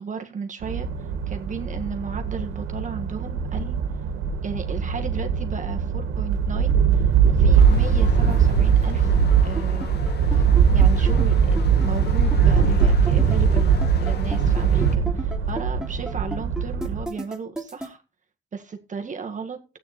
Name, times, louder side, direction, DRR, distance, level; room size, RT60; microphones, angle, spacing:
voice 1, 0.0-3.8 4.4-9.1 9.4-10.0 10.3-11.6 11.8-13.8 14.0-18.0 18.5-19.6, right 5 dB, 40° right, 4 dB, 1.8 m, -35 dB
sound 1, 0.6-17.0, right 6 dB, 90° right, 1.8 m, -21 dB
sound 2, 7.6-15.0, left 7 dB, 55° left, 1.5 m, -37 dB
sound 3, 9.2-17.9, right 1 dB, 5° right, 3.0 m, -33 dB
13.5 x 9.0 x 4.2 m, 0.32 s
cardioid pair, 90°, 20 cm